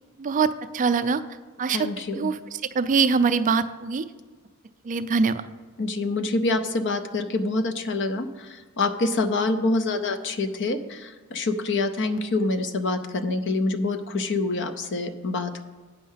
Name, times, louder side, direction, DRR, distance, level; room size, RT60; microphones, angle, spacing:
voice 1, 0.2-1.2 1.6-1.9 2.1-2.4 2.7-4.0 4.8-5.5, right 5 dB, 35° right, 11 dB, 0.4 m, -23 dB
voice 2, 1.7-2.3 5.8-15.6, left 2 dB, 55° left, 10 dB, 0.7 m, -26 dB
9.2 x 6.4 x 5.6 m, 1.4 s
head